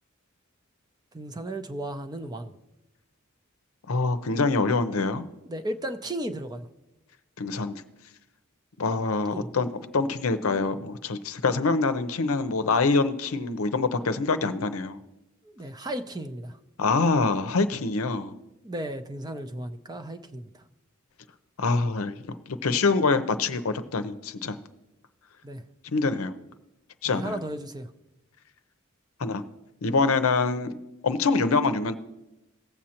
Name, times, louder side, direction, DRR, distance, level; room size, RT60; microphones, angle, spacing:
voice 1, 1.1-2.6 5.4-6.7 9.3-9.5 15.4-16.6 18.6-20.6 25.4-25.6 27.1-27.9, right 1 dB, 20° right, 8 dB, 0.5 m, -35 dB
voice 2, 3.9-5.3 7.4-7.8 8.8-9.7 9.9-15.0 16.8-18.3 21.6-22.3 22.6-24.6 25.9-26.3 27.0-27.4 29.2-29.4 29.8-30.7 31.0-31.9, left 3 dB, 75° left, 10 dB, 0.6 m, -25 dB
18.0 x 7.5 x 2.9 m, 0.97 s
head